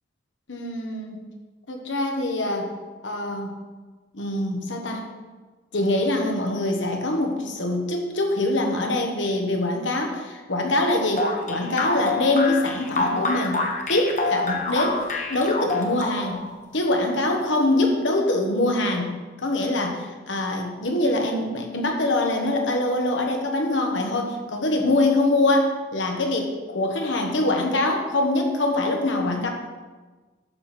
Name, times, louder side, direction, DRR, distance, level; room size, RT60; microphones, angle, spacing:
voice 1, 0.5-1.2 1.7-2.7 3.0-3.5 4.1-5.0 5.7-13.6 13.9-15.0 15.3-16.4 16.7-19.1 19.4-29.5, left 2 dB, 80° left, 2 dB, 1.5 m, -24 dB
sound 1, 11.2-16.5, left 3 dB, 40° left, 1.1 m, -26 dB
11.5 x 4.6 x 5.9 m, 1.3 s
head